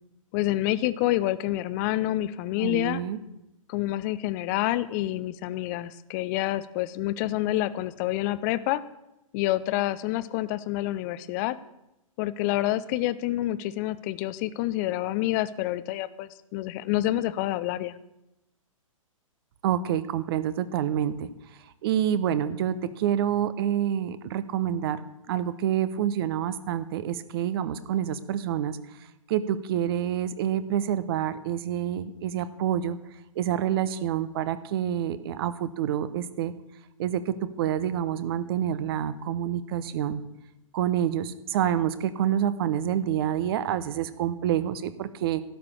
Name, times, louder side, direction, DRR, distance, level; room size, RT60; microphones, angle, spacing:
voice 1, 0.3-3.0 3.7-8.8 9.3-11.6 12.2-18.0, left 15 dB, 30° left, 17 dB, 0.7 m, -28 dB
voice 2, 2.6-3.2 19.6-21.3 21.8-25.0 25.3-28.8 29.3-33.0 33.4-36.5 37.0-40.2 40.7-45.4, right 10 dB, 45° right, 14 dB, 1.0 m, -27 dB
12.5 x 6.9 x 9.9 m, 0.90 s
figure-of-eight pair, 120°, 18 cm